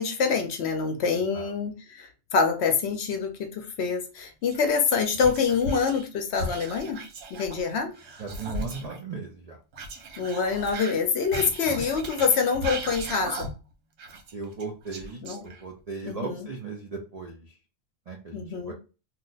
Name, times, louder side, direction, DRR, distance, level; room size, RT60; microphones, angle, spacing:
voice 1, 0.0-7.0 7.3-7.9 10.2-13.5 15.2-15.5 16.0-16.5 18.3-18.7, left 5 dB, 65° left, 5 dB, 0.8 m, -26 dB
voice 2, 1.1-1.5 8.2-9.6 11.4-11.5 14.3-17.5 18.1-18.7, right 4 dB, 55° right, 0 dB, 0.4 m, -37 dB
Whispering, 4.5-6.1 6.3-9.0 9.7-13.7 14.0-15.8, right 1 dB, 80° right, 1.1 m, -37 dB
2.8 x 2.1 x 3.8 m, 0.32 s
omnidirectional pair, 1.3 m